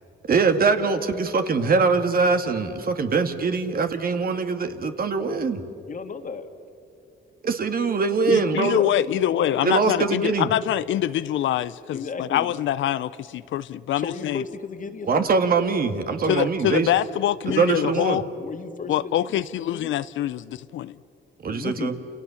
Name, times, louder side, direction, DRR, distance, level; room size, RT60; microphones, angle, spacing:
voice 1, 0.3-5.6 7.4-8.8 9.6-10.5 15.0-16.9 17.6-18.2 21.4-21.9, right 4 dB, 45° right, 2.0 m, -22 dB
voice 2, 5.9-6.5 8.2-9.7 11.7-12.5 14.0-15.3 16.2-16.6 17.5-18.0 18.4-19.9 21.5-21.9, left 5 dB, 40° left, 2.0 m, -35 dB
voice 3, 8.3-14.4 16.3-18.2 18.9-21.0, left 12 dB, 75° left, 0.6 m, -25 dB
29.5 x 28.5 x 7.1 m
cardioid pair, 90°, 20 cm